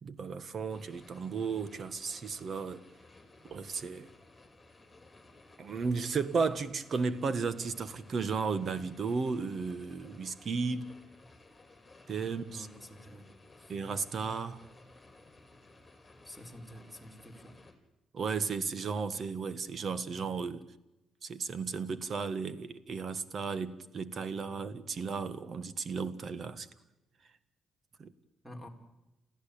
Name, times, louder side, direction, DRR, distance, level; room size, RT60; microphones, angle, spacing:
voice 1, 0.0-2.8 3.4-4.1 5.6-10.9 12.1-12.7 13.7-14.6 18.1-20.6 21.2-26.7 28.0-28.1, right 5 dB, 50° right, 1.6 m, -34 dB
sound 1, 0.7-17.7, left 2 dB, 15° left, 5.3 m, -57 dB
voice 2, 6.1-6.6 12.2-13.3 13.6-13.8 16.2-17.6 28.4-28.7, equal, 5° right, 4.6 m, -49 dB
29.5 x 15.0 x 8.7 m
cardioid pair, 90°, 0 cm